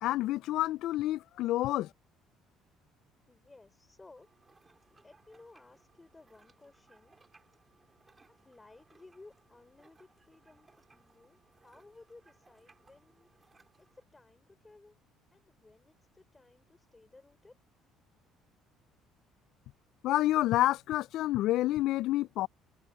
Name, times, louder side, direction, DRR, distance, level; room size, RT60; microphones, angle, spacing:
voice 1, 0.0-1.9 20.0-22.5, left 15 dB, 70° left, 0.3 m, -28 dB
voice 2, 3.3-4.3 4.9-7.2 8.3-15.0 15.3-17.6, left 3 dB, 15° left, 4.5 m, -58 dB
sound 1, 4.2-14.0, right 3 dB, 20° right, 3.7 m, -65 dB
cardioid pair, 135°, 0 cm